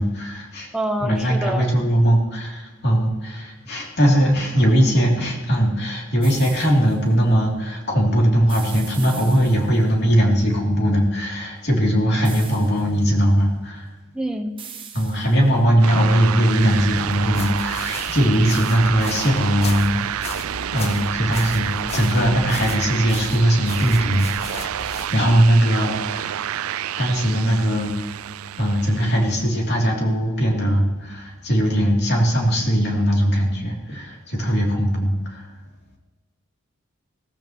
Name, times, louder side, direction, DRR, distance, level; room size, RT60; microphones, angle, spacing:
voice 1, 0.0-0.7 1.0-13.9 14.9-20.2 20.7-24.7 25.1-26.5 27.0-27.9 28.6-35.5, equal, 50° left, -1 dB, 2.9 m, -20 dB
voice 2, 0.7-1.9 14.1-14.5, right 1 dB, 5° right, 3 dB, 0.9 m, -26 dB
sound 1, 6.2-7.0 8.5-9.9 12.2-13.0 14.6-15.6, right 7 dB, 25° right, 1.2 m, -40 dB
sound 2, 15.8-29.5, right 10 dB, 85° right, 0.4 m, -29 dB
sound 3, 16.6-25.2, left 4 dB, 30° left, 0.6 m, -36 dB
17.0 x 14.5 x 3.0 m, 1.1 s
head